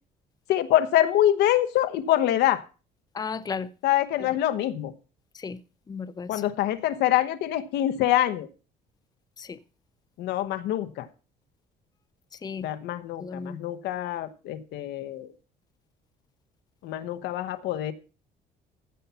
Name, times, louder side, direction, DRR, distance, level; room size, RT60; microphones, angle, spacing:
voice 1, 0.5-2.6 3.8-4.9 6.3-8.5 10.2-11.1 12.6-15.3 16.8-17.9, left 12 dB, 80° left, 1.1 m, -25 dB
voice 2, 3.1-3.7 4.2-4.3 5.3-5.6 5.9-6.4 9.4-9.6 12.3-12.7 13.2-13.6, left 5 dB, 25° left, 0.6 m, -35 dB
15.5 x 5.6 x 5.6 m
cardioid pair, 110°, 17 cm